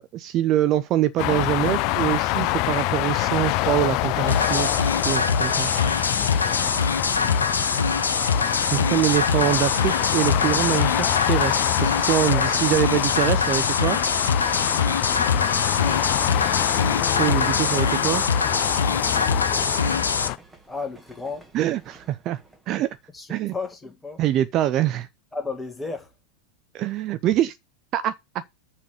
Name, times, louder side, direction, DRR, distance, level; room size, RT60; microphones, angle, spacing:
voice 1, 0.0-5.7 8.7-14.0 17.2-18.2 21.5-22.4 22.7-22.9 23.3-23.5 24.2-25.1 26.7-27.6 27.9-28.4, right 13 dB, 35° right, 0.5 m, -24 dB
sound 1, 1.2-20.4, left 17 dB, 45° left, 0.5 m, -25 dB
sound 2, 4.3-20.3, left 4 dB, 75° left, 0.9 m, -24 dB
voice 2, 6.6-7.3 12.3-12.5 15.7-16.2 19.4-20.4 20.7-21.5 23.1-24.2 25.3-26.1, left 4 dB, 10° left, 1.7 m, -35 dB
sound 3, 16.6-22.9, right 2 dB, 10° right, 1.7 m, -43 dB
6.9 x 5.2 x 6.4 m
figure-of-eight pair, 90°, 0 cm